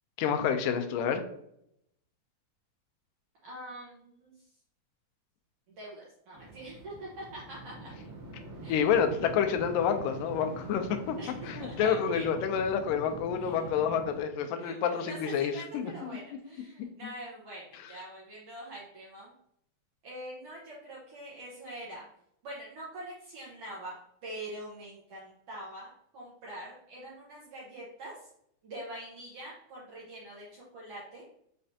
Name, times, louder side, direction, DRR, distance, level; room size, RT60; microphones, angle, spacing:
voice 1, 0.2-1.2 8.7-11.2 11.5-15.9, left 7 dB, 90° left, 7 dB, 2.2 m, -28 dB
voice 2, 3.4-4.5 5.7-7.9 8.6-8.9 11.2-12.3 13.3-13.8 14.6-19.3 20.0-22.0 22.4-28.3 28.6-31.2, right 1 dB, 70° right, -6 dB, 1.4 m, -44 dB
sound 1, 6.3-14.2, right 1 dB, 55° right, 1.9 m, -44 dB
5.7 x 3.2 x 2.7 m, 0.73 s
omnidirectional pair, 3.8 m